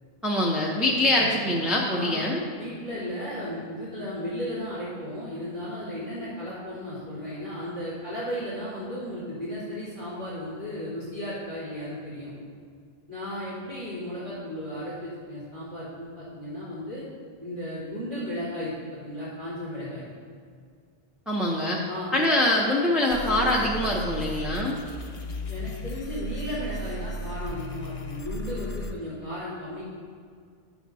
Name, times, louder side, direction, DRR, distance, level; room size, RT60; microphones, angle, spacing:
voice 1, 0.2-2.4 21.3-21.8 22.1-24.8, left 1 dB, ahead, -4 dB, 0.6 m, -24 dB
voice 2, 2.6-12.3 13.1-17.0 17.4-20.1 21.9-22.1 25.5-29.8, equal, 50° right, -13 dB, 2.6 m, -35 dB
sound 1, 23.1-28.9, equal, 85° left, 1.1 m, -35 dB
10.5 x 7.4 x 2.7 m, 2.1 s
omnidirectional pair, 1.1 m